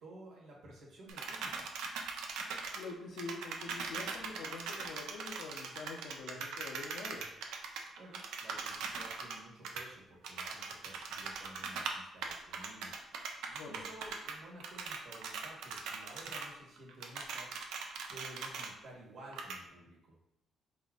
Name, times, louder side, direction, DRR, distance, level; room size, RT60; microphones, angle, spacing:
voice 1, 0.0-1.7 8.0-17.5 18.1-20.2, right 1 dB, 70° right, -4 dB, 1.4 m, -53 dB
sound 1, 1.1-2.9 3.2-9.4 9.6-9.8 10.2-12.0 12.2-14.3 14.6-16.5 16.8-18.7 19.3-19.6, right 5 dB, 90° right, 0.4 m, -41 dB
voice 2, 2.7-7.3 13.6-13.8, left 3 dB, 90° left, -3 dB, 0.5 m, -45 dB
4.1 x 2.6 x 3.5 m, 0.84 s
cardioid pair, 90°, 0 cm